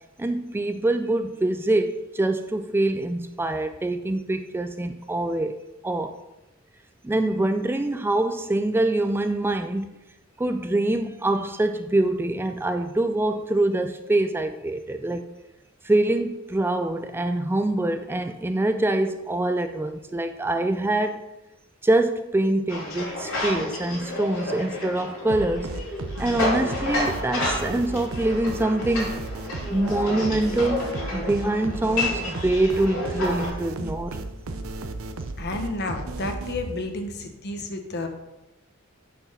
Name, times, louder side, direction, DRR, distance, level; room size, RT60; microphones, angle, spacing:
voice 1, 0.2-5.5 5.8-6.1 7.0-9.9 10.4-15.3 15.8-21.2 21.8-25.7 26.2-29.2 29.7-34.2, right 2 dB, 10° right, 0.3 m, -24 dB
sound 1, 22.7-33.5, left 2 dB, 80° left, 3.2 m, -30 dB
sound 2, 25.3-36.9, right 3 dB, 80° right, 0.7 m, -35 dB
voice 2, 35.4-38.1, left 2 dB, 55° left, 1.2 m, -31 dB
6.8 x 6.1 x 5.7 m
head